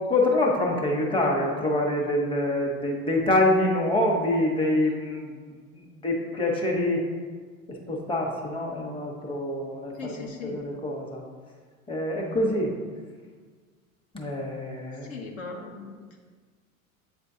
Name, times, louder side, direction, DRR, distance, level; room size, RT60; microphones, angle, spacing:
voice 1, 0.1-7.0 7.7-11.2 11.9-12.7 14.1-15.1, left 1 dB, 10° left, -1 dB, 1.1 m, -26 dB
voice 2, 9.9-10.6 15.0-16.2, left 4 dB, 55° left, 1 dB, 0.9 m, -39 dB
8.2 x 4.4 x 2.7 m, 1.6 s
hypercardioid pair, 85°, 43 cm